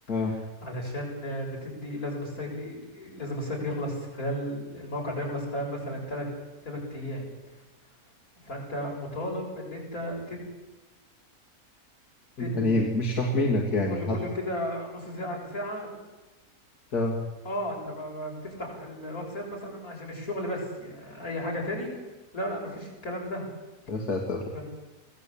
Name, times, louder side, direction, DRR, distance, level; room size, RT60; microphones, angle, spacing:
voice 1, 0.1-6.3 6.6-7.2 8.4-10.5 12.4-12.9 13.6-15.9 17.4-21.9 22.3-23.4 24.5-24.6, equal, 70° left, -1 dB, 7.2 m, -34 dB
voice 2, 12.4-14.2 16.9-17.2 23.9-24.5, left 2 dB, 90° left, 1 dB, 2.8 m, -26 dB
24.5 x 16.5 x 8.6 m, 1.1 s
omnidirectional pair, 1.6 m